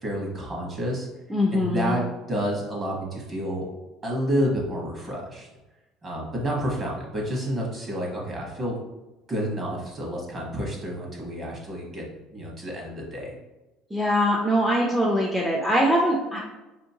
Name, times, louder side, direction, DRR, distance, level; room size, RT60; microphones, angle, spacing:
voice 1, 0.0-1.1 1.5-2.0 2.3-3.7 4.0-5.5 6.0-8.8 9.3-13.4, equal, 30° right, -2 dB, 1.1 m, -29 dB
voice 2, 1.3-1.9 13.9-16.4, equal, 5° right, -3 dB, 0.5 m, -22 dB
5.0 x 2.8 x 2.7 m, 1.1 s
cardioid pair, 140°, 0 cm